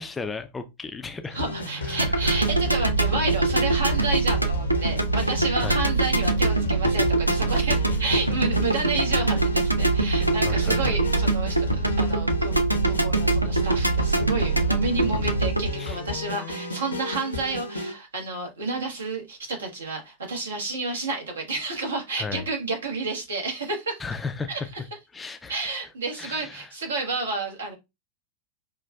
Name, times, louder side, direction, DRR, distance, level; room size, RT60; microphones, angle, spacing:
voice 1, 0.0-1.4 1.8-2.4 5.6-5.8 10.4-11.0 15.8-16.0 22.2-22.4 24.0-24.7 25.1-25.5 26.2-26.7, left 4 dB, 15° left, 0.4 m, -35 dB
sound 1, 1.3-17.9, left 3 dB, 80° left, 0.7 m, -34 dB
voice 2, 1.3-11.7 12.0-12.5 12.8-24.0 24.5-24.6 25.5-27.7, right 3 dB, 70° right, 1.3 m, -30 dB
sound 2, 2.0-15.7, right 3 dB, 90° right, 0.4 m, -23 dB
5.5 x 2.3 x 2.3 m
figure-of-eight pair, 90°, 0 cm